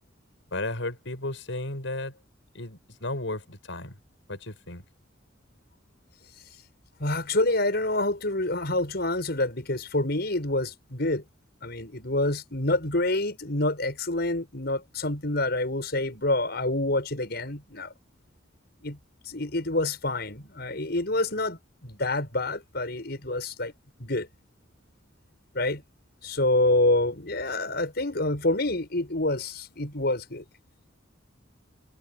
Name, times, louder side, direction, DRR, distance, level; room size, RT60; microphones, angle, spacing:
voice 1, 0.5-2.1 2.5-4.0 4.3-4.8, left 2 dB, 85° left, 5.5 m, -34 dB
voice 2, 7.0-11.2 11.6-17.9 18.8-19.0 19.3-23.7 24.0-24.3 25.5-25.8 26.2-30.4, left 2 dB, 60° left, 7.1 m, -27 dB
head